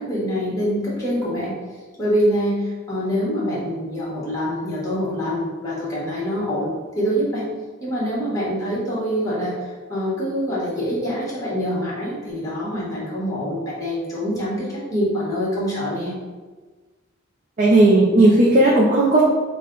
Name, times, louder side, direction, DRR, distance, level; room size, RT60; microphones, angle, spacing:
voice 1, 0.0-1.6 2.0-7.4 7.8-16.1, equal, 15° left, -7 dB, 1.5 m, -25 dB
voice 2, 17.6-19.2, right 2 dB, 40° right, -4 dB, 0.6 m, -14 dB
5.5 x 2.3 x 3.8 m, 1.3 s
head